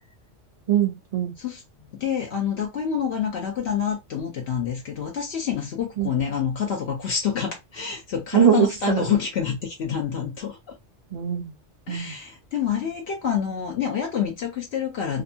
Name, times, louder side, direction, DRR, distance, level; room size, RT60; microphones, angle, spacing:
voice 1, 0.7-1.3 6.0-6.1 8.3-9.1 11.1-11.5 11.9-12.2, right 9 dB, 40° right, 0.6 m, -22 dB
voice 2, 1.9-10.7 11.9-15.2, left 8 dB, 65° left, 0.9 m, -27 dB
2.7 x 2.2 x 2.7 m
omnidirectional pair, 1.2 m